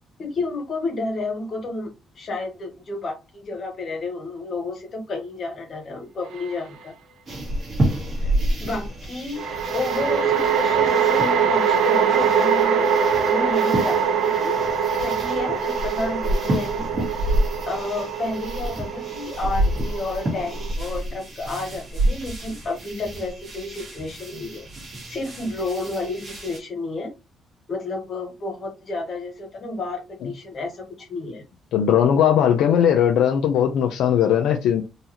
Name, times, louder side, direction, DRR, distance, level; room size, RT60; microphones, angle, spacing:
voice 1, 0.2-6.9 8.2-8.3 8.6-12.9 13.2-14.6 15.0-16.9 17.6-24.7 25.1-27.1 27.7-31.4, left 2 dB, 35° left, 1.2 m, -31 dB
sound 1, 6.4-6.5 9.3-20.7, right 6 dB, 75° right, 0.6 m, -23 dB
sound 2, 7.3-26.6, right 1 dB, 30° right, 1.6 m, -29 dB
voice 2, 31.7-34.8, left 9 dB, 85° left, 0.5 m, -18 dB
4.0 x 2.8 x 2.8 m
cardioid pair, 175°, 0 cm